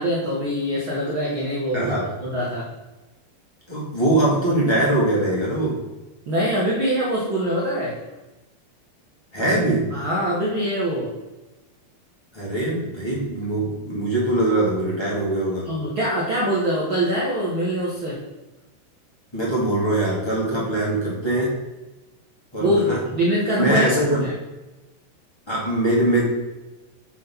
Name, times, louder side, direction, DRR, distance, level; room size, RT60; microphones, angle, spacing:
voice 1, 0.0-1.9 2.2-2.7 6.3-8.0 9.9-11.1 15.6-18.2 22.6-23.9 24.2-24.3, equal, 85° right, -4 dB, 1.1 m, -23 dB
voice 2, 1.7-2.0 3.7-5.7 9.3-9.8 12.3-15.6 19.3-21.5 22.5-23.0 23.6-24.2 25.5-26.2, right 1 dB, 15° left, -6 dB, 0.9 m, -22 dB
7.4 x 3.8 x 5.8 m, 1.1 s
omnidirectional pair, 4.4 m